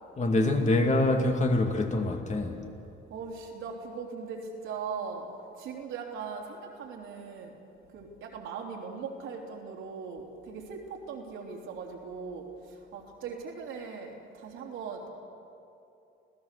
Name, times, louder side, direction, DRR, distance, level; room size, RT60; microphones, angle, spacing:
voice 1, 0.2-2.6, left 2 dB, 35° left, 2.4 m, -25 dB
voice 2, 3.1-5.3 5.6-7.6 7.9-15.1, right 5 dB, 90° right, 3.4 m, -39 dB
26.0 x 16.5 x 6.8 m
cardioid pair, 90°, 20 cm